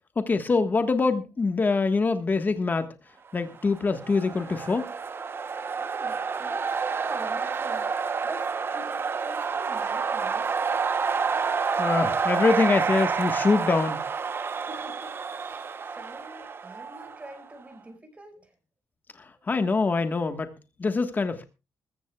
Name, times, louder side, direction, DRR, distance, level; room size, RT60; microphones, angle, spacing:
voice 1, 0.2-2.9 3.3-4.9 11.8-14.0 19.5-20.5 20.8-21.4, left 4 dB, 30° left, 1.4 m, -24 dB
sound 1, 3.7-17.4, right 5 dB, 40° right, 0.9 m, -29 dB
voice 2, 5.8-7.9 8.2-10.5 14.5-18.5, right 2 dB, 20° right, 5.2 m, -45 dB
20.5 x 14.5 x 2.4 m
cardioid pair, 95°, 6 cm